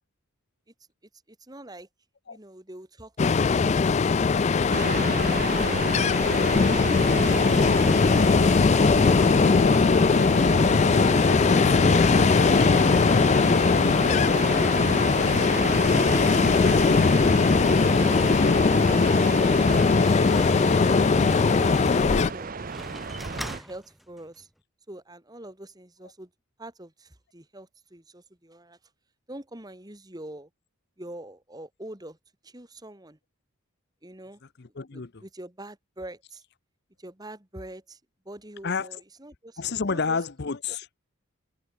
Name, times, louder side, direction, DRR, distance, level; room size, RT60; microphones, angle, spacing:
voice 1, 1.3-1.9 2.3-4.7 7.7-8.3 8.9-9.7 9.9-12.0 21.2-21.7 22.1-22.5 23.4-24.5 24.9-26.3 26.6-28.8 29.3-30.5 31.0-32.2 32.4-33.2 34.0-34.4 34.9-36.4 37.0-38.0 38.3-40.2, right 1 dB, 15° right, 2.0 m, -45 dB
Ocean, 3.2-22.3, left 4 dB, 30° left, 0.3 m, -20 dB
sound 1, 4.7-23.6, right 4 dB, 40° right, 0.7 m, -32 dB
Slam, 19.6-24.4, equal, ahead, 7.9 m, -43 dB
voice 2, 34.6-35.2 38.6-39.0 39.6-40.9, left 5 dB, 50° left, 0.7 m, -30 dB
head